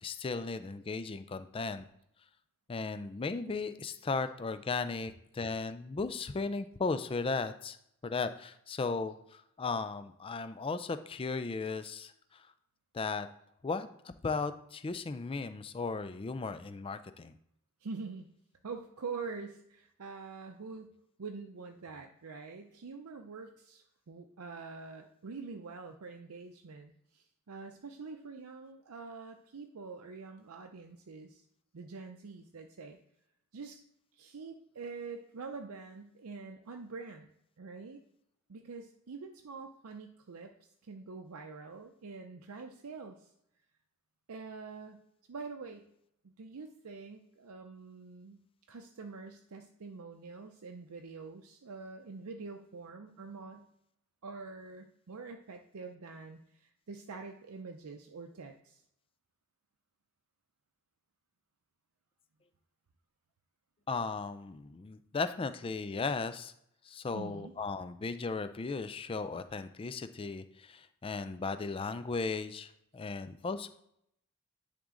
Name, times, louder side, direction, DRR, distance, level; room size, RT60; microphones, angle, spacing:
voice 1, 0.0-1.9 2.7-7.8 8.0-12.5 12.9-13.3 13.6-17.3 63.9-66.5 66.8-73.7, left 4 dB, 25° left, 11 dB, 0.4 m, -36 dB
voice 2, 17.8-18.3 18.6-20.9 21.2-31.5 31.7-33.0 33.5-33.8 34.1-37.3 37.6-38.0 38.5-40.5 40.8-43.3 44.3-45.0 45.3-45.9 46.2-48.4 48.7-53.7 54.2-58.8 67.1-67.6, right 4 dB, 85° right, 4 dB, 0.6 m, -45 dB
10.0 x 3.7 x 3.8 m, 0.75 s
head